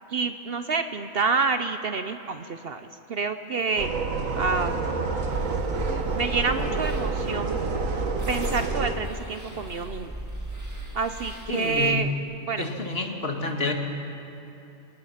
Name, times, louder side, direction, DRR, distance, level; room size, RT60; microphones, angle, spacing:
voice 1, 0.1-4.0 4.4-4.9 6.1-7.5 8.3-10.1 10.9-12.1 12.5-12.7, right 4 dB, 55° right, 9 dB, 0.9 m, -28 dB
sound 1, 3.8-8.9, right 3 dB, 90° right, 1.8 m, -28 dB
sound 2, 5.3-11.9, right 1 dB, 15° right, 2.0 m, -39 dB
voice 2, 11.5-12.0 12.6-13.7, left 3 dB, 50° left, 2 dB, 2.2 m, -28 dB
28.0 x 18.0 x 5.8 m, 2.9 s
omnidirectional pair, 1.3 m